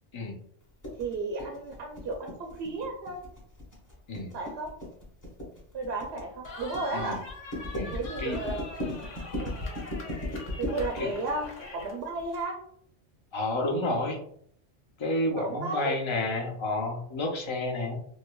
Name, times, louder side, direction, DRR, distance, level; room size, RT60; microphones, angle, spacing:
sound 1, 0.8-12.4, left 1 dB, 15° left, 1.1 m, -37 dB
voice 1, 1.0-3.2 4.3-4.7 5.7-7.2 7.9-8.6 9.4-9.5 10.6-12.6 15.4-15.9, right 3 dB, 70° right, 1 dB, 0.8 m, -33 dB
Cheering, 6.5-12.0, left 3 dB, 90° left, 1.2 m, -43 dB
voice 2, 7.7-8.4 11.0-11.1 13.3-14.2 15.0-18.0, left 2 dB, 35° left, 1 dB, 0.4 m, -30 dB
4.6 x 2.1 x 2.2 m, 0.63 s
omnidirectional pair, 1.2 m